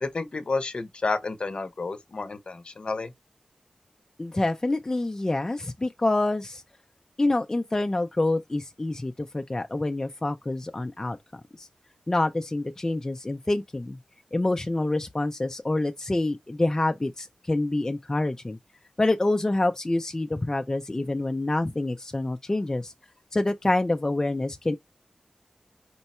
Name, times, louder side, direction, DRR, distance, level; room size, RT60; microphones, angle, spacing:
voice 1, 0.0-3.1, left 3 dB, 55° left, 0.7 m, -30 dB
voice 2, 4.2-6.6 7.2-11.7 12.1-14.0 14.3-18.6 19.0-22.9 23.3-24.8, left 2 dB, 25° left, 0.4 m, -27 dB
4.5 x 2.0 x 4.2 m
wide cardioid pair, 70°, 2 cm